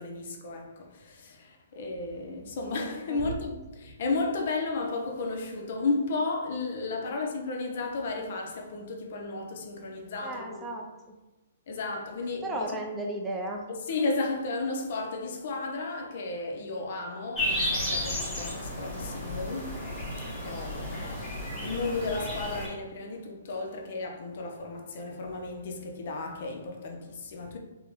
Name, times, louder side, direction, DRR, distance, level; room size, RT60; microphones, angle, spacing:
voice 1, 0.0-10.7 11.7-12.6 13.7-19.8 20.4-27.6, left 3 dB, 55° left, 0.5 m, -33 dB
voice 2, 10.2-10.9 12.4-13.6, right 1 dB, 10° right, 0.4 m, -34 dB
sound 1, 17.3-22.7, left 1 dB, 15° left, 1.1 m, -33 dB
3.5 x 2.0 x 3.0 m
hypercardioid pair, 150°, 0 cm